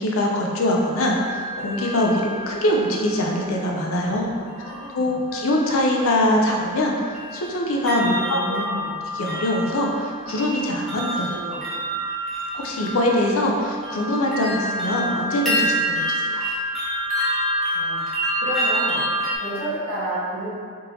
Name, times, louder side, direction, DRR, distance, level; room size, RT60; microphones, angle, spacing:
voice 1, 0.0-4.3 4.6-6.9 7.3-8.8 9.2-11.6 12.5-16.4, left 1 dB, 65° left, 0 dB, 0.5 m, -23 dB
sound 1, 0.7-3.5 4.6-5.0 5.3-19.4, equal, ahead, 0.5 m, -28 dB
voice 2, 4.0-5.2 8.1-8.9 11.3-11.7 17.7-18.0 18.4-19.0 19.3-20.5, right 1 dB, 50° right, -10 dB, 1.3 m, -31 dB
4.0 x 3.7 x 2.8 m, 2.1 s
head